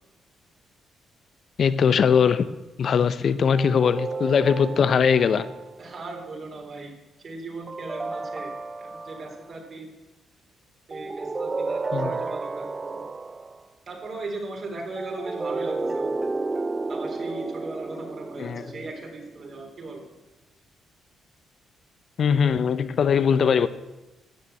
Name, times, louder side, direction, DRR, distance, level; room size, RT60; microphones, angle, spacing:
voice 1, 1.6-2.5 2.8-5.5 11.9-12.2 18.4-18.7 22.2-23.7, left 6 dB, 55° left, 0.6 m, -21 dB
sound 1, 3.5-6.0 7.7-9.5 10.9-13.6 15.0-19.5, right 3 dB, 25° right, 0.6 m, -32 dB
voice 2, 5.8-6.9 7.2-8.5 8.8-9.9 10.9-13.0 13.9-16.2 16.9-20.0, right 3 dB, 45° right, 3.5 m, -38 dB
13.0 x 7.0 x 9.0 m
cardioid pair, 90°, 0 cm